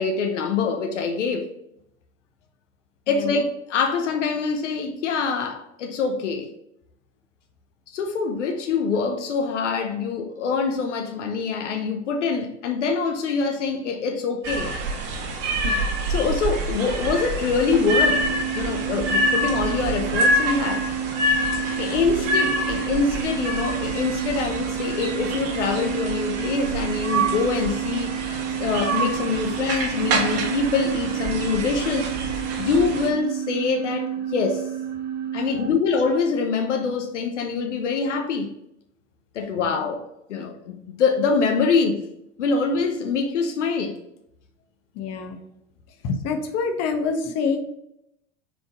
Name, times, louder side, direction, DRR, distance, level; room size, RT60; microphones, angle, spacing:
voice 1, 0.0-1.5 3.1-6.5 7.9-14.7 16.1-18.2 18.5-20.9 21.8-32.1 32.6-34.7 35.3-38.5 39.3-40.0 40.3-42.1 42.4-44.0, left 5 dB, 80° left, 1.0 m, -24 dB
sound 1, 14.4-33.1, right 1 dB, 45° right, 1.5 m, -27 dB
voice 2, 15.1-15.8 39.7-39.8 44.9-45.4 45.9-47.6, left 5 dB, 45° left, 1.0 m, -27 dB
sound 2, 17.7-35.7, right 8 dB, 30° right, 1.1 m, -30 dB
4.9 x 3.9 x 5.1 m
hypercardioid pair, 100°, 36 cm